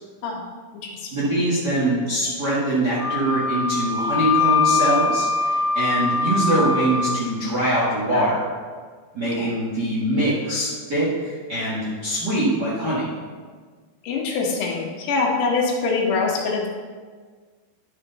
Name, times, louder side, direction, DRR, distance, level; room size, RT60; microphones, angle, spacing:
voice 1, 1.1-8.4 9.1-13.1, right 1 dB, 40° right, -8 dB, 1.5 m, -23 dB
Wind instrument woodwind instrument, 3.0-7.2, left 4 dB, 20° right, 2.2 m, -22 dB
voice 2, 14.0-16.7, left 4 dB, 80° left, -1 dB, 3.4 m, -24 dB
11.0 x 6.7 x 4.0 m, 1.5 s
omnidirectional pair, 4.8 m